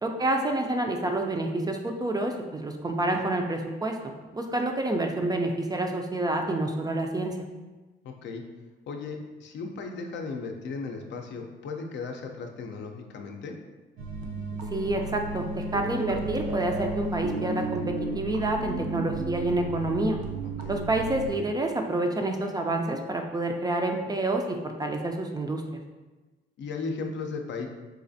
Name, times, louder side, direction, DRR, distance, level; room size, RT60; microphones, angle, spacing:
voice 1, 0.0-4.0 4.3-7.3 14.7-17.8 18.1-20.2 20.7-25.6, right 2 dB, 20° right, 3 dB, 0.3 m, -28 dB
voice 2, 8.0-8.4 8.9-13.6 20.4-20.8 26.6-27.7, left 4 dB, 65° left, 3 dB, 0.5 m, -36 dB
sound 1, 14.0-21.3, right 2 dB, 80° right, 0.5 m, -33 dB
4.1 x 2.4 x 2.6 m, 1.2 s
cardioid pair, 90°, 20 cm